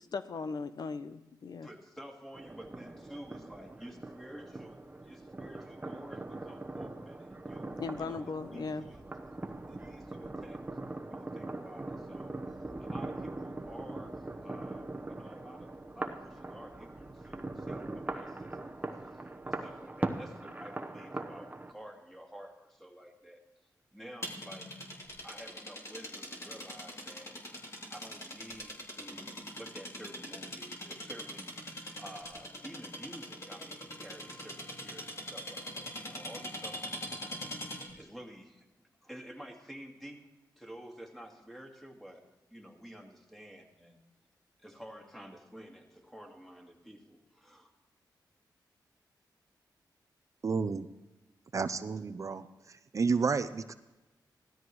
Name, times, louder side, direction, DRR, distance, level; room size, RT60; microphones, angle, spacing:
voice 1, 0.0-1.7 7.8-8.8, left 4 dB, 60° left, 11 dB, 0.6 m, -38 dB
voice 2, 1.6-9.0 9.7-10.6 11.1-12.4 12.7-18.7 19.0-23.4 23.9-25.0 25.2-27.3 27.7-37.4 38.0-40.3 40.6-42.3 42.5-44.0 44.6-47.7, equal, 5° left, 1 dB, 2.1 m, -50 dB
sound 1, 2.3-21.7, right 2 dB, 20° right, 1.0 m, -41 dB
sound 2, 24.2-38.0, equal, 35° left, 2.8 m, -43 dB
voice 3, 50.4-50.9 51.5-53.7, right 5 dB, 45° right, 11 dB, 0.5 m, -31 dB
17.0 x 13.0 x 3.1 m, 1.1 s
cardioid pair, 80°, 8 cm